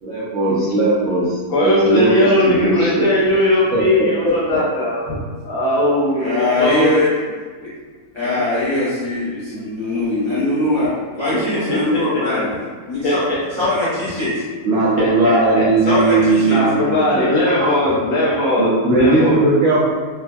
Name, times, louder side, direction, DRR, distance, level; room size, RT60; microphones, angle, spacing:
voice 1, 0.0-1.3 1.6-3.1 3.7-4.6 14.6-17.1 17.4-17.7 18.6-19.9, right 2 dB, 65° right, -8 dB, 0.8 m, -17 dB
voice 2, 1.5-6.9 13.0-13.1 15.0-19.4, left 1 dB, 65° left, -7 dB, 1.0 m, -19 dB
voice 3, 6.1-7.1 7.6-7.7 8.1-12.6 12.9-13.2 13.6-14.3 15.8-16.6, left 2 dB, 25° left, -13 dB, 0.7 m, -21 dB
3.3 x 2.1 x 2.2 m, 1.5 s
omnidirectional pair, 1.6 m